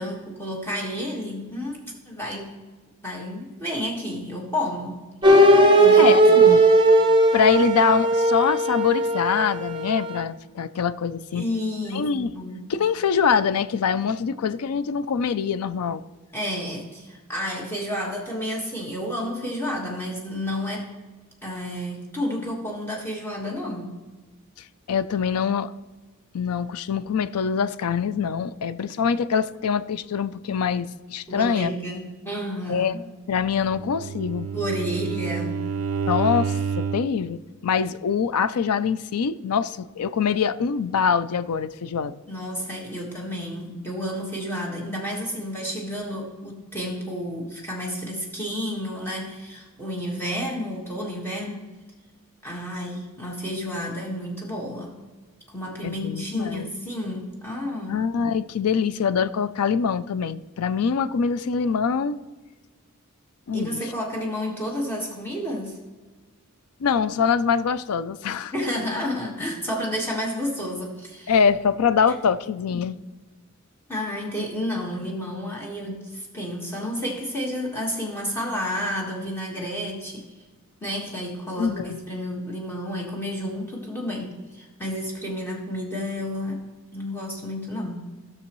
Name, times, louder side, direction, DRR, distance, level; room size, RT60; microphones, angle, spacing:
voice 1, 0.0-2.5 3.0-5.0 5.7-6.7 11.3-12.7 16.3-20.9 21.4-24.0 31.3-33.0 34.5-35.7 42.3-51.6 52.4-55.0 55.5-58.0 63.5-65.8 68.5-71.4 72.7-72.9 73.9-80.2 80.8-86.6 86.9-88.1, equal, 10° left, -2 dB, 1.5 m, -31 dB
sound 1, 5.2-10.2, right 2 dB, 20° right, 0.8 m, -17 dB
voice 2, 6.0-6.6 7.3-11.4 11.9-12.3 12.7-16.0 24.9-25.7 26.3-31.7 32.7-33.0 33.3-34.5 36.1-42.2 55.8-56.7 57.9-62.2 63.5-63.8 66.8-68.5 71.3-73.0 81.6-82.0, left 6 dB, 85° left, 14 dB, 0.4 m, -24 dB
Bowed string instrument, 33.6-37.2, right 6 dB, 65° right, 0.4 m, -28 dB
17.0 x 6.3 x 3.1 m, 1.3 s
head